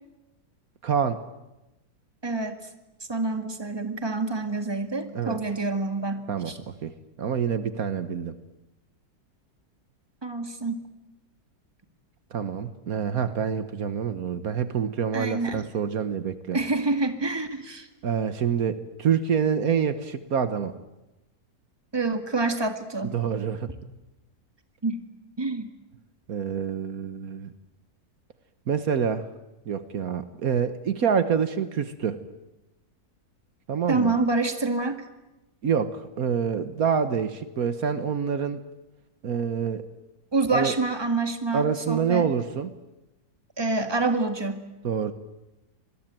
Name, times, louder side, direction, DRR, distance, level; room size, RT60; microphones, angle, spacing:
voice 1, 0.8-1.2 5.1-5.4 6.3-6.5 6.8-6.9 7.2-8.3 12.3-16.6 18.0-20.7 23.1-23.7 26.3-27.5 28.7-29.3 29.6-32.2 33.7-34.1 35.6-38.6 39.2-39.8 40.5-40.7 41.5-42.7 44.8-45.1, right 7 dB, 70° right, 11 dB, 1.6 m, -26 dB
voice 2, 2.2-2.6 3.1-6.6 10.2-10.9 15.1-15.6 16.5-17.9 21.9-23.2 24.8-25.0 25.4-25.7 33.9-35.0 40.3-42.3 43.6-44.6, right 3 dB, 15° right, 7 dB, 2.0 m, -27 dB
26.0 x 21.5 x 9.1 m, 0.99 s
omnidirectional pair, 1.6 m